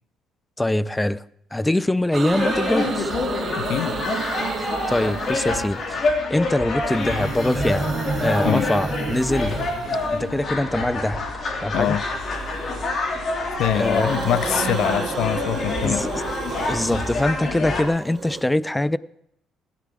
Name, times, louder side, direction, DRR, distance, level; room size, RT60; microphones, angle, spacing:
voice 1, 0.6-1.2 1.5-3.1 4.6-9.6 10.1-11.2 11.6-12.0 13.7-14.2 15.8-16.1 16.7-19.0, left 1 dB, 10° left, 0.4 m, -23 dB
sound 1, 2.1-6.1 6.8-10.5 11.9-13.1 13.4-18.4, right 5 dB, 45° right, 0.7 m, -32 dB
sound 2, 2.3-17.8, left 2 dB, 45° left, 2.6 m, -27 dB
voice 2, 3.5-4.0 8.4-8.7 11.7-12.0 13.6-16.1, left 11 dB, 75° left, 0.4 m, -24 dB
16.5 x 13.0 x 3.6 m
cardioid pair, 105°, 0 cm